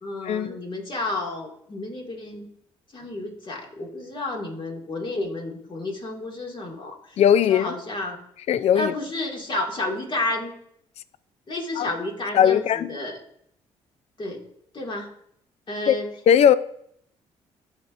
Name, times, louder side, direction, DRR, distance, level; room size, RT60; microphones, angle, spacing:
voice 1, 0.0-2.5 2.9-7.2 7.5-8.2 8.7-10.5 11.5-13.2 14.2-14.4 14.7-15.1 15.7-16.1, left 2 dB, 40° left, 2.1 m, -31 dB
voice 2, 7.2-7.7 8.5-8.9 11.8-11.9 12.3-13.0 15.9-16.0 16.3-16.5, left 9 dB, 55° left, 0.4 m, -18 dB
12.5 x 4.4 x 2.5 m
supercardioid pair, 60°, 13 cm